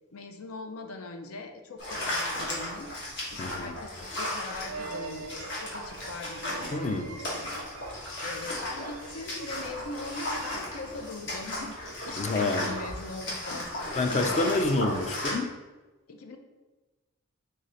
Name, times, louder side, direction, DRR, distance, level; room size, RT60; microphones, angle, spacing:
voice 1, 0.1-11.8 12.0-14.4 16.1-16.4, left 3 dB, 80° left, 6 dB, 0.6 m, -41 dB
sound 1, 1.8-15.3, left 1 dB, 55° left, 1.4 m, -35 dB
voice 2, 3.4-3.8 6.7-7.1 12.2-12.7 14.0-15.5, left 2 dB, 30° left, 7 dB, 0.4 m, -28 dB
sound 2, 4.6-11.1, right 4 dB, 80° right, 0.4 m, -44 dB
3.8 x 3.2 x 4.3 m, 1.2 s
head